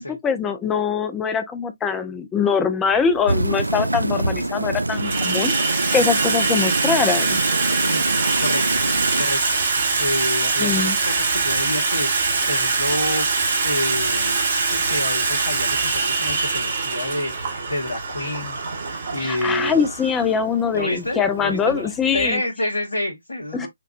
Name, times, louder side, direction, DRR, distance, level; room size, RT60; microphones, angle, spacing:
voice 1, 0.0-5.5 5.9-7.4 10.6-11.0 19.2-22.4 23.5-23.7, left 6 dB, 10° left, 0.7 m, -23 dB
Water tap faucet / Sink (filling or washing), 3.0-3.1 4.0-4.4 4.7-22.3, right 4 dB, 45° right, 1.5 m, -23 dB
sound 1, 3.3-9.2, right 2 dB, 75° right, 0.4 m, -26 dB
voice 2, 8.4-8.8 9.2-9.6 10.0-13.3 13.6-14.4 14.7-18.6 19.1-19.8 20.7-23.7, left 1 dB, 75° left, 1.8 m, -28 dB
6.6 x 2.5 x 2.4 m
figure-of-eight pair, 140°, 0 cm